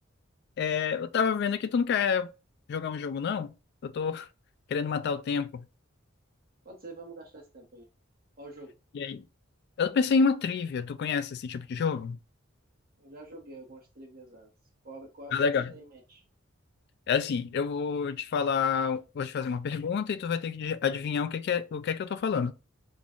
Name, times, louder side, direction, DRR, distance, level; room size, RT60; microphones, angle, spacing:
voice 1, 0.6-2.3 2.7-3.5 3.8-4.3 4.7-5.6 8.9-9.2 9.8-12.2 15.3-15.7 17.1-22.5, left 6 dB, 55° left, 0.3 m, -28 dB
voice 2, 6.6-7.9 8.4-8.8 13.0-14.5 14.8-16.2, right 2 dB, 45° right, 1.3 m, -47 dB
3.8 x 2.4 x 3.6 m
head